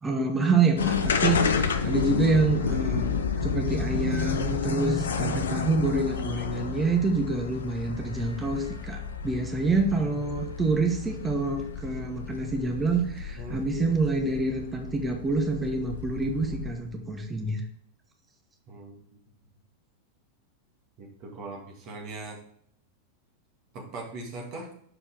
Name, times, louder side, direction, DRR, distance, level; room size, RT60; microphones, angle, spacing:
voice 1, 0.0-3.1 3.4-17.6, right 3 dB, 15° right, 3 dB, 1.2 m, -27 dB
sound 1, 0.8-16.9, left 6 dB, 65° left, 0.6 m, -31 dB
voice 2, 13.4-13.7 18.7-19.0 21.0-22.4 23.7-24.7, right 2 dB, 40° right, 0 dB, 2.2 m, -40 dB
6.6 x 5.2 x 5.0 m, 0.66 s
figure-of-eight pair, 90°, 0 cm